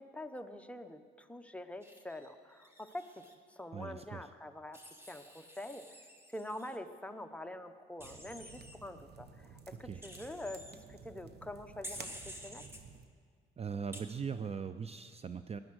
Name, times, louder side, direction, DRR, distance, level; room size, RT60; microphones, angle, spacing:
voice 1, 0.0-4.8 5.1-5.9 6.3-12.6, left 1 dB, 5° left, 6 dB, 0.9 m, -45 dB
Wild animals, 1.8-3.3 4.7-6.8 8.0-8.8 10.0-10.7 11.8-12.8 13.9-14.0, equal, 10° right, 1.9 m, -50 dB
voice 2, 3.7-4.3 9.8-10.0 13.6-15.6, right 6 dB, 30° right, 11 dB, 0.5 m, -40 dB
sound 1, 8.0-13.1, right 5 dB, 55° right, 1.0 m, -53 dB
17.5 x 10.5 x 6.3 m, 2.1 s
cardioid pair, 90°, 20 cm